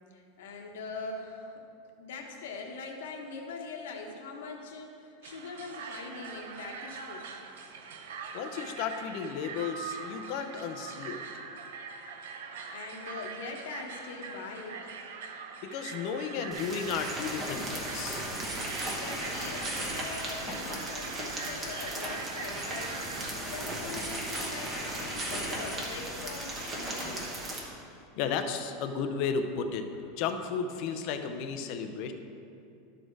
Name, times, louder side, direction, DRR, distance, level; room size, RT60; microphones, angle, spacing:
voice 1, 0.1-1.5 2.0-7.3 12.6-14.9 18.8-27.3, left 4 dB, 80° left, 2 dB, 1.2 m, -42 dB
sound 1, 5.2-23.3, right 5 dB, 85° right, 0.7 m, -43 dB
voice 2, 8.3-11.2 15.6-18.2 28.2-29.9 30.2-32.1, left 6 dB, 40° left, 7 dB, 0.5 m, -33 dB
sound 2, 16.5-27.6, right 1 dB, 15° right, 1.1 m, -36 dB
12.5 x 4.3 x 4.6 m, 2.6 s
supercardioid pair, 175°, 0 cm